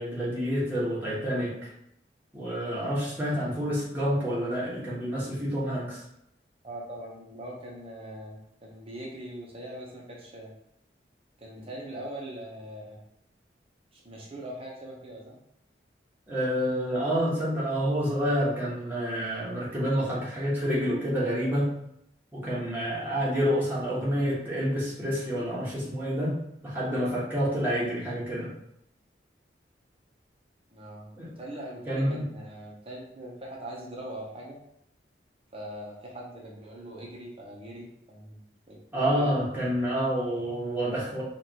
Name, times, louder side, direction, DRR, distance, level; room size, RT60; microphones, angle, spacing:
voice 1, 0.0-1.5 2.3-6.0 16.3-21.7 22.3-26.3 26.6-28.5 31.2-31.3 31.9-32.2 38.9-41.2, equal, 10° right, -8 dB, 1.3 m, -28 dB
voice 2, 6.6-10.5 11.4-13.0 13.9-15.4 30.7-31.1 31.4-34.6 35.5-38.4 38.7-39.4, right 1 dB, 30° right, -3 dB, 0.8 m, -41 dB
4.8 x 2.5 x 2.9 m, 0.75 s
head